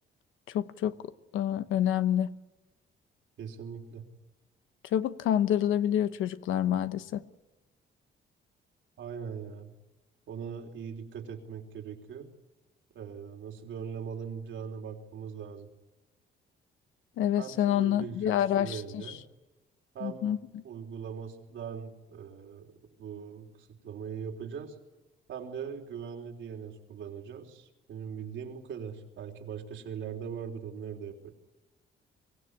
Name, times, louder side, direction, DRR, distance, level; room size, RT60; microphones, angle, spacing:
voice 1, 0.5-0.9 1.3-2.3 4.9-7.2 17.2-18.8 19.1-19.2 20.0-20.6, left 10 dB, 85° left, 1.1 m, -27 dB
voice 2, 3.4-4.0 9.0-9.7 10.3-12.3 12.9-15.7 17.4-19.2 19.9-20.3 20.6-24.7 25.3-31.3, right 7 dB, 75° right, 3.6 m, -40 dB
24.0 x 16.0 x 9.9 m
cardioid pair, 90°, 20 cm